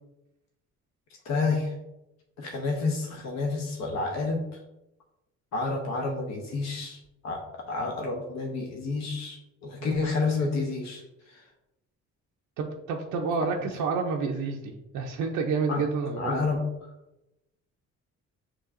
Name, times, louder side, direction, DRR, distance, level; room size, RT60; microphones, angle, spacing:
voice 1, 1.2-1.7 2.4-4.6 5.5-11.4 13.6-13.7 15.7-15.8 16.2-16.9, left 3 dB, 60° left, 1 dB, 0.8 m, -30 dB
voice 2, 12.6-16.3, right 5 dB, 90° right, 1 dB, 0.6 m, -29 dB
6.6 x 2.9 x 2.5 m, 0.93 s
cardioid pair, 90°, 30 cm